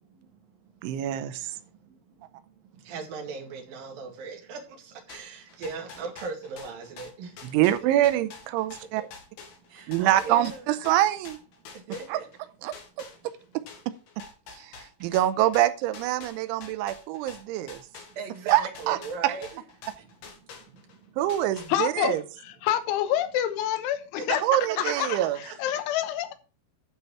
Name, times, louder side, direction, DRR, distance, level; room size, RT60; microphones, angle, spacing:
voice 1, 0.0-0.8 1.4-7.4 8.9-9.1 9.7-10.7 11.6-12.3 18.1-21.2 24.2-24.4 24.9-25.8, right 5 dB, 55° right, 3.3 m, -40 dB
voice 2, 0.8-1.6 7.4-9.0 9.9-11.4 12.1-12.2 12.6-12.7 14.6-14.7 15.0-17.8 18.5-18.6 18.9-19.0 19.2-19.3 21.2-22.2 24.4-25.4, right 13 dB, 80° right, 3.0 m, -25 dB
sound 1, 5.1-12.4 12.7-21.0 21.3-22.1, left 5 dB, 65° left, 3.5 m, -47 dB
voice 3, 21.7-22.1 22.6-24.4 24.8-25.2 25.6-26.3, left 12 dB, 80° left, 3.5 m, -27 dB
12.0 x 4.5 x 5.6 m
omnidirectional pair, 5.5 m